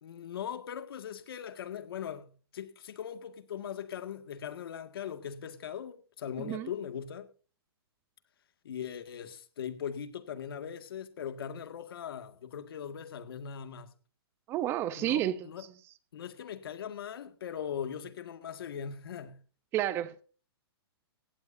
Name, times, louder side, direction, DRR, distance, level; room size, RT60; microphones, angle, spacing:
voice 1, 0.0-7.3 8.6-13.9 15.0-15.7 16.1-19.4, left 8 dB, 65° left, 2.0 m, -40 dB
voice 2, 6.4-6.7 14.5-15.5 19.7-20.2, right 12 dB, 20° right, 0.6 m, -31 dB
17.5 x 16.0 x 2.7 m
hypercardioid pair, 165°, 13 cm